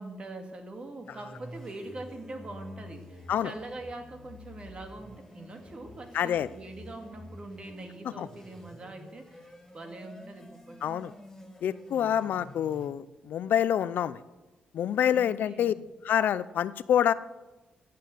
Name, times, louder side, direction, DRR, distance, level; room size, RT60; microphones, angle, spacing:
voice 1, 0.0-10.8 15.1-15.8, right 2 dB, 35° right, 5 dB, 2.1 m, -43 dB
sound 1, 1.0-12.9, left 1 dB, 10° left, 3.9 m, -49 dB
voice 2, 6.1-6.5 8.2-8.3 10.8-11.1 11.6-14.2 14.7-15.7 16.0-17.1, left 9 dB, 75° left, 16 dB, 0.5 m, -27 dB
15.0 x 8.6 x 7.9 m, 1.1 s
cardioid pair, 115°, 3 cm